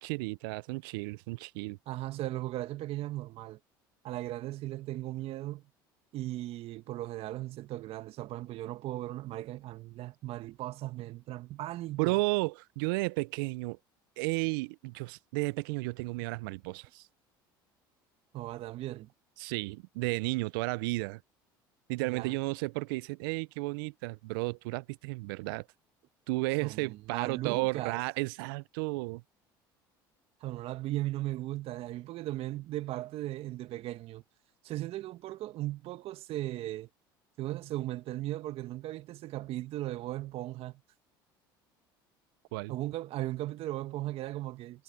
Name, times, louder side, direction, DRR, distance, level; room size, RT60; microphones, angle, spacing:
voice 1, 0.0-1.8 12.0-13.8 14.2-17.1 19.4-21.2 21.9-25.7 26.3-29.2 42.5-42.8, right 25 dB, 75° right, 0.6 m, -33 dB
voice 2, 1.9-3.6 4.0-5.6 6.1-12.2 18.3-19.1 22.0-22.4 26.6-28.0 30.4-34.2 34.6-36.9 37.4-40.8 42.7-44.8, right 15 dB, 60° right, 1.6 m, -37 dB
hypercardioid pair, 70°, 12 cm